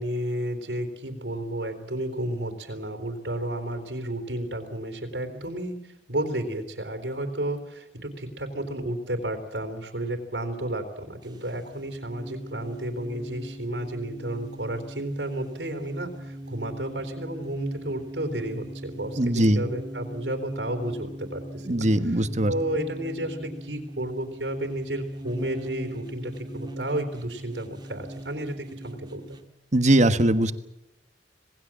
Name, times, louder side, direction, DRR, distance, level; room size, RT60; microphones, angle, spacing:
voice 1, 0.0-22.2 22.5-29.4, right 1 dB, 85° right, 6 dB, 3.6 m, -32 dB
sound 1, 11.2-29.5, right 1 dB, 25° right, 1.7 m, -40 dB
voice 2, 19.2-19.6 21.7-22.5 29.7-30.5, right 1 dB, 45° right, 10 dB, 1.4 m, -20 dB
26.5 x 19.5 x 7.5 m, 0.86 s
head